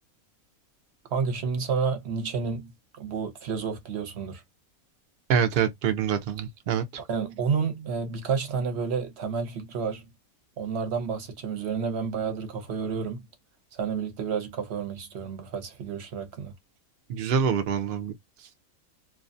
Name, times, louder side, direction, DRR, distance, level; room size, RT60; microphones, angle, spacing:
voice 1, 1.1-4.4 7.1-10.1 10.6-13.2 13.7-16.5, right 5 dB, 55° right, 0.9 m, -30 dB
voice 2, 5.3-6.8 17.1-18.1, right 7 dB, 75° right, 0.5 m, -25 dB
2.3 x 2.3 x 2.5 m
omnidirectional pair, 1.5 m